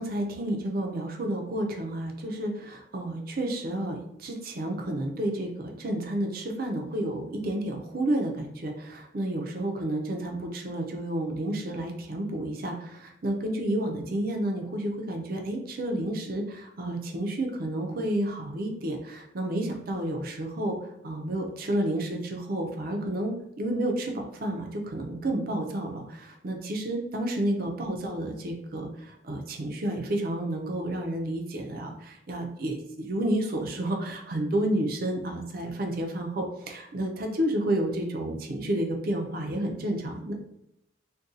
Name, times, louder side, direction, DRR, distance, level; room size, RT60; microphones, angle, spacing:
voice 1, 0.0-20.8 21.0-28.9 29.2-40.3, right 1 dB, 50° right, 2 dB, 0.5 m, -30 dB
2.6 x 2.2 x 3.7 m, 0.81 s
head